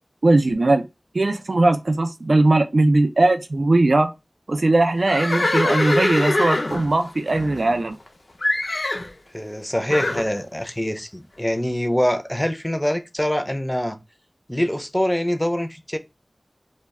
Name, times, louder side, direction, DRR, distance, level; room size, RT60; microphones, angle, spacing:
voice 1, 0.2-0.9 1.1-4.1 4.5-7.9, right 2 dB, 85° right, 0.3 m, -19 dB
Livestock farm animals working animals, 5.0-8.1 8.4-9.1 9.9-10.3, left 2 dB, 75° left, 0.4 m, -23 dB
voice 2, 9.3-14.0 14.5-16.0, equal, 10° left, 0.4 m, -24 dB
2.2 x 2.0 x 3.5 m
wide cardioid pair, 45°, 0 cm